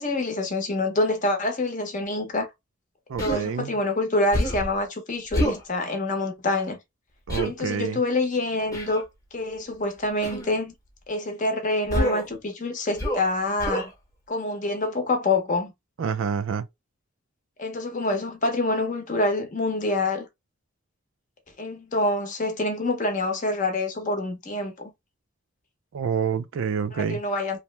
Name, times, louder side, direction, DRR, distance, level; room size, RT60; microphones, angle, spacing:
voice 1, 0.0-2.5 3.2-6.8 7.4-9.1 9.3-10.7 11.1-13.9 14.3-15.7 17.6-20.3 21.6-24.9 26.9-27.6, left 2 dB, 40° left, 0.7 m, -26 dB
voice 2, 3.1-3.8 7.3-8.0 16.0-16.7 25.9-27.2, right 6 dB, 70° right, 0.3 m, -28 dB
Human voice, 3.2-3.4 4.3-4.7 5.3-5.6 7.3-7.5 8.7-9.0 10.2-10.5 11.9-12.3 13.0-13.3 13.6-13.9, equal, 15° left, 0.9 m, -27 dB
2.8 x 2.0 x 3.2 m
head